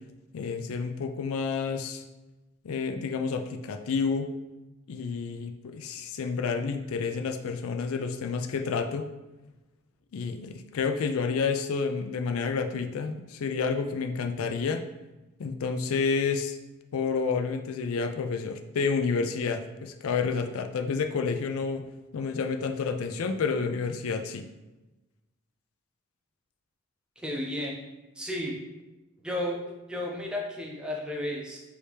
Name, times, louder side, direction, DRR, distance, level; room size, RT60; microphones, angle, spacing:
voice 1, 0.3-2.0 2.6-4.3 4.9-9.1 10.1-14.8 15.4-16.6 16.9-21.8 22.1-24.4, left 5 dB, 80° left, 6 dB, 0.4 m, -29 dB
voice 2, 27.2-27.8 28.2-28.6 29.2-29.6 29.9-31.6, left 1 dB, 5° right, -1 dB, 0.5 m, -33 dB
4.7 x 2.7 x 3.4 m, 1.1 s
head